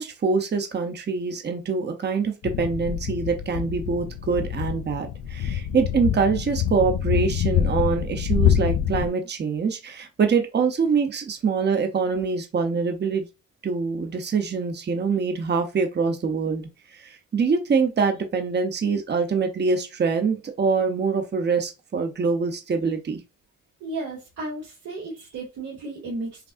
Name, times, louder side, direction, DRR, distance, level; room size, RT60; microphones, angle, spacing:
voice 1, 0.0-13.3 13.6-23.2, right 5 dB, 35° right, 0.9 m, -24 dB
sound 1, 2.4-9.1, left 9 dB, 60° left, 0.5 m, -25 dB
voice 2, 23.8-26.5, right 2 dB, 85° right, 2.0 m, -34 dB
5.8 x 2.3 x 2.6 m
cardioid pair, 90°, 30 cm